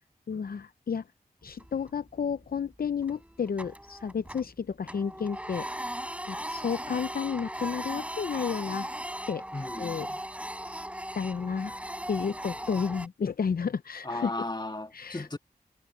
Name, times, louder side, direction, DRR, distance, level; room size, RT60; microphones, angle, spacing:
voice 1, 0.3-1.0 1.4-5.7 6.3-8.9 9.3-9.4 9.8-10.1 11.1-11.8 12.1-14.3 14.9-15.3, left 6 dB, 70° left, 0.6 m, -31 dB
Printer, 1.5-2.1 2.4-2.6 3.0-4.6 4.8-13.1, right 1 dB, 10° right, 4.1 m, -38 dB
voice 2, 9.5-10.2 14.0-15.4, left 2 dB, 25° left, 2.1 m, -36 dB
cardioid pair, 45°, 16 cm